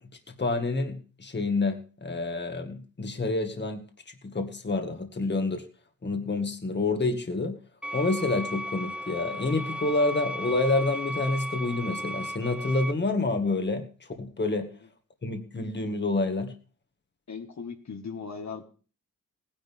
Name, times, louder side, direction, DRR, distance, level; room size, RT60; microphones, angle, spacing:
voice 1, 0.0-5.7 6.0-7.6 7.9-14.7 15.2-16.6, left 3 dB, 30° left, 6 dB, 1.8 m, -28 dB
sound 1, 7.8-12.9, equal, 5° right, 0.5 m, -35 dB
voice 2, 17.3-18.6, left 5 dB, 55° left, 4 dB, 1.7 m, -38 dB
19.0 x 10.5 x 3.6 m, 0.39 s
wide cardioid pair, 135°, 34 cm